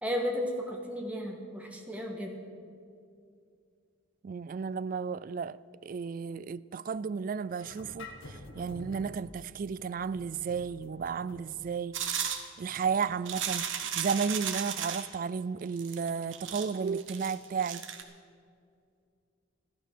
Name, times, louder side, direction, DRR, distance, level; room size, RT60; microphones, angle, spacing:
voice 1, 0.0-2.3, equal, 5° right, 1.7 m, -34 dB
voice 2, 4.2-12.0 12.6-17.8, right 6 dB, 45° right, 0.3 m, -33 dB
sound 1, 7.6-14.3, left 2 dB, 85° left, 1.7 m, -50 dB
sound 2, 11.9-15.1 15.8-18.0, right 8 dB, 80° right, 1.3 m, -35 dB
14.0 x 12.5 x 6.7 m
head